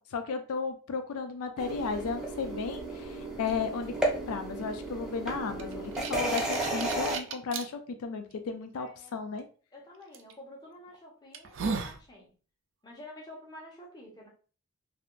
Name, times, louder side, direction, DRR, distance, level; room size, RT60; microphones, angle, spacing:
voice 1, 0.0-9.4, left 5 dB, 80° left, 7 dB, 0.4 m, -34 dB
sound 1, 1.6-7.2, right 2 dB, 5° right, 0.5 m, -34 dB
sound 2, 5.6-7.6 8.3-8.4 10.1-10.3 10.9-11.0 11.3-12.0, right 5 dB, 60° right, 0.4 m, -35 dB
voice 2, 8.7-9.2 9.7-12.3 12.8-14.3, left 1 dB, 20° left, -3 dB, 0.9 m, -49 dB
3.4 x 2.5 x 2.4 m, 0.38 s
head